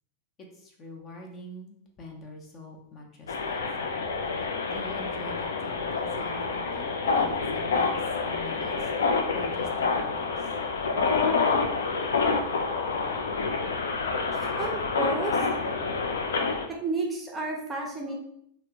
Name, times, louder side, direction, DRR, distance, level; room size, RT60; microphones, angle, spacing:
voice 1, 0.4-3.9 4.4-7.9 8.2-8.9 9.3-10.5, equal, 30° left, 0 dB, 0.6 m, -45 dB
sound 1, 3.3-16.7, left 4 dB, 65° left, 0.3 m, -28 dB
voice 2, 14.3-15.5 16.7-18.1, right 3 dB, 15° right, -1 dB, 0.5 m, -32 dB
3.2 x 2.1 x 2.8 m, 0.73 s
figure-of-eight pair, 90°, 0 cm